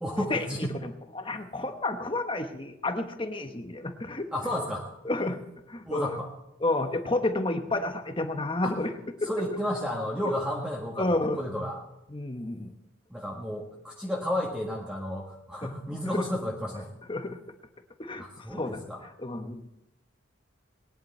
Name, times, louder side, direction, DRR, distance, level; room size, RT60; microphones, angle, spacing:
voice 1, 0.0-0.7 4.3-4.9 5.8-6.3 8.6-8.8 9.2-11.8 13.1-16.9 18.2-19.0, left 1 dB, 5° right, -3 dB, 1.5 m, -32 dB
voice 2, 0.8-4.3 5.0-5.4 5.7-6.1 6.6-8.9 9.2-9.3 11.0-11.4 12.1-12.7 15.6-15.7 16.1-16.2 17.1-17.4 18.0-18.8 19.2-19.6, left 2 dB, 25° left, 7 dB, 1.1 m, -30 dB
20.0 x 10.5 x 4.3 m, 0.90 s
head